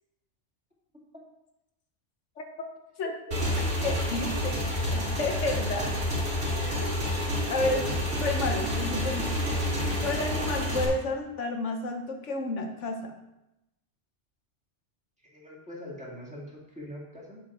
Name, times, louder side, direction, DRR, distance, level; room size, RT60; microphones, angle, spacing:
Motorcycle / Engine, 3.3-10.9, equal, 60° right, 2.5 m, -29 dB
voice 1, 3.8-6.0 6.6-7.0 7.5-7.8 8.2-9.4 10.0-13.1, left 2 dB, 75° left, 4 dB, 1.2 m, -31 dB
voice 2, 7.7-8.0 15.3-17.4, left 1 dB, 5° right, -5 dB, 2.2 m, -41 dB
8.0 x 6.4 x 4.9 m, 0.92 s
omnidirectional pair, 1.2 m